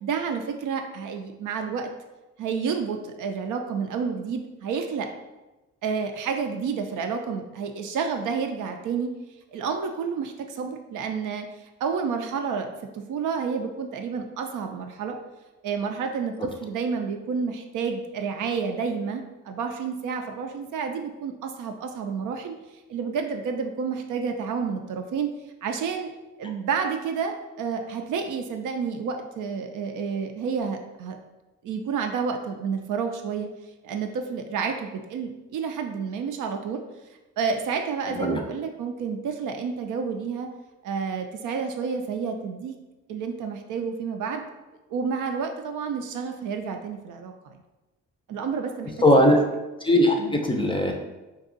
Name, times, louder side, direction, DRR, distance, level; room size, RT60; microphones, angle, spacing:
voice 1, 0.0-1.9 2.4-5.1 5.8-9.1 9.5-11.5 11.8-15.2 15.6-22.5 22.9-25.3 25.6-26.1 26.4-31.2 31.6-33.5 33.8-36.8 37.4-40.5 40.8-42.8 43.1-44.5 44.9-47.5 48.3-48.9 50.2-50.4, right 6 dB, 60° right, 4 dB, 0.5 m, -30 dB
voice 2, 38.1-38.4 49.0-49.4 49.8-50.9, left 1 dB, 15° left, 2 dB, 0.5 m, -19 dB
2.6 x 2.3 x 3.8 m, 1.1 s
hypercardioid pair, 50°, 35 cm